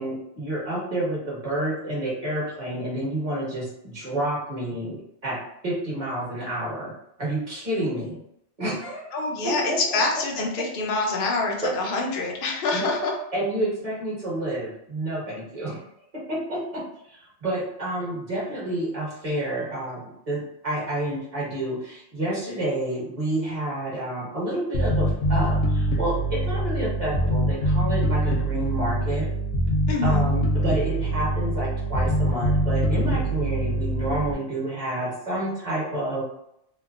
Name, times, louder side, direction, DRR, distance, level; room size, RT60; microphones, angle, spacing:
voice 1, 0.0-6.9 7.2-8.2 8.6-9.1 9.4-10.0 11.6-11.7 12.7-12.9 13.3-15.8 16.3-16.8 17.1-29.3 30.0-36.2, right 1 dB, 30° right, -6 dB, 1.3 m, -29 dB
voice 2, 9.1-13.1 29.9-30.2, left 3 dB, 55° left, 0 dB, 0.7 m, -26 dB
Bass guitar, 24.7-34.3, equal, 85° left, 0.9 m, -24 dB
2.9 x 2.1 x 2.4 m, 0.77 s
omnidirectional pair, 1.2 m